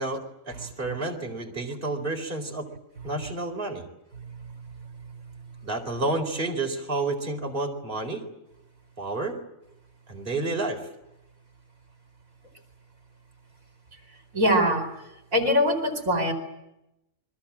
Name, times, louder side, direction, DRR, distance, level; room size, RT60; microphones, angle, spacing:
voice 1, 0.0-2.7 3.0-3.8 5.6-8.2 9.0-9.4 10.1-10.9, right 2 dB, 30° right, 3 dB, 4.4 m, -30 dB
voice 2, 4.2-4.5 13.9-14.0 14.3-16.3, equal, 50° right, 7 dB, 4.7 m, -24 dB
29.5 x 23.5 x 7.5 m, 0.87 s
omnidirectional pair, 1.8 m